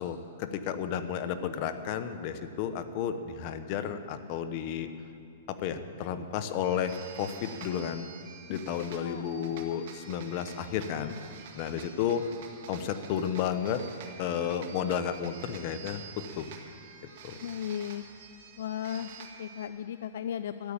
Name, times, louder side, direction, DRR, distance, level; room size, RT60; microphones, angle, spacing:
voice 1, 0.0-4.9 5.5-8.1 8.5-11.2 11.5-12.2 12.7-13.8 14.2-16.5 17.2-17.4, left 8 dB, 40° left, 10 dB, 0.9 m, -32 dB
sound 1, 6.6-19.7, right 6 dB, 55° right, 1.7 m, -48 dB
voice 2, 17.4-18.0 18.6-20.7, left 9 dB, 70° left, 12 dB, 0.4 m, -36 dB
13.5 x 8.5 x 8.7 m, 2.7 s
hypercardioid pair, 140°, 0 cm